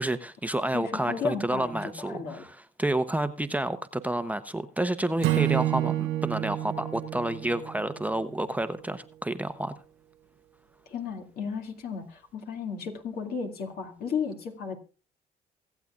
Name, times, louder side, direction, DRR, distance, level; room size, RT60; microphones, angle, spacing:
voice 1, 0.0-9.7, right 1 dB, 10° right, 0.8 m, -30 dB
voice 2, 0.7-2.4 10.9-14.8, left 5 dB, 65° left, 2.3 m, -34 dB
Acoustic guitar / Strum, 5.2-8.5, right 14 dB, 90° right, 0.8 m, -29 dB
23.5 x 8.2 x 2.5 m
supercardioid pair, 65°, 17 cm